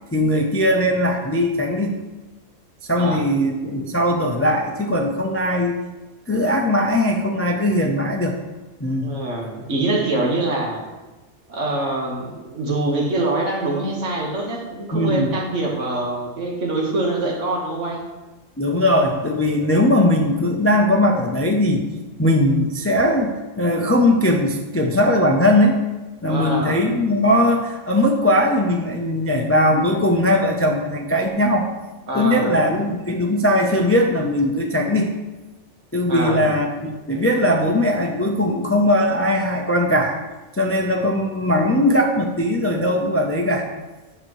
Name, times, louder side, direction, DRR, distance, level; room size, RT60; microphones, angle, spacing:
voice 1, 0.1-2.0 2.8-5.8 6.3-8.4 8.8-9.2 14.9-15.3 18.6-21.9 22.2-25.8 26.2-31.7 32.1-35.1 35.9-40.2 40.6-43.7, left 1 dB, 20° left, 2 dB, 0.4 m, -19 dB
voice 2, 9.0-10.8 11.5-18.0 26.3-26.8 32.1-32.7 36.1-36.5, right 2 dB, 70° right, -1 dB, 1.8 m, -24 dB
10.0 x 6.5 x 3.1 m, 1.2 s
omnidirectional pair, 1.3 m